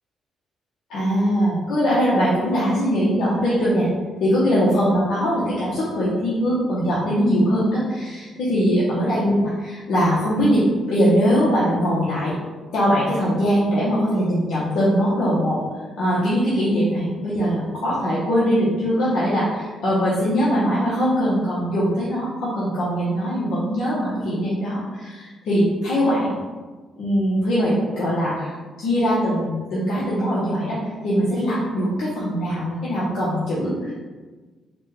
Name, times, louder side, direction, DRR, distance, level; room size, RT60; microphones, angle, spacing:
voice 1, 0.9-3.9 4.2-12.3 12.7-15.6 16.0-26.3 27.0-33.9, equal, 75° left, -8 dB, 0.9 m, -21 dB
4.0 x 2.2 x 3.3 m, 1.3 s
cardioid pair, 90°, 0 cm